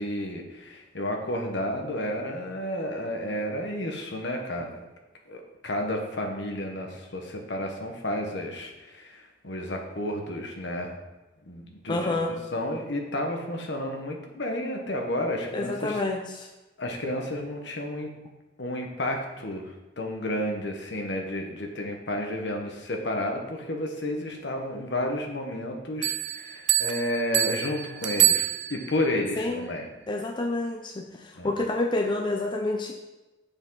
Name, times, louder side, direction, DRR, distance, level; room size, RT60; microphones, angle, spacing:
voice 1, 0.0-4.8 5.3-11.0 11.4-12.2 12.5-16.0 16.8-18.1 18.6-29.8 31.4-31.5, left 1 dB, 65° left, 2 dB, 1.3 m, -31 dB
voice 2, 11.9-12.3 15.5-16.5 29.4-29.7 30.1-32.9, left 2 dB, 25° left, 2 dB, 0.6 m, -28 dB
Bell, 26.0-29.1, right 13 dB, 65° right, 0.5 m, -26 dB
8.1 x 6.9 x 4.0 m, 1.1 s
head